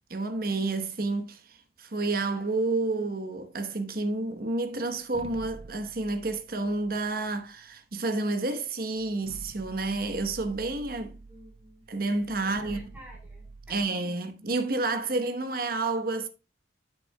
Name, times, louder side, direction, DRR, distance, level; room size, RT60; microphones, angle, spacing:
voice 1, 0.1-11.2 11.9-12.8 13.7-16.3, right 2 dB, 55° right, 1.0 m, -30 dB
sound 1, 5.0-7.8 8.5-8.6 9.0-13.9, right 3 dB, 35° right, 0.4 m, -47 dB
voice 2, 11.3-11.9 12.3-13.9, equal, 10° right, 4.4 m, -52 dB
10.0 x 7.5 x 2.2 m
head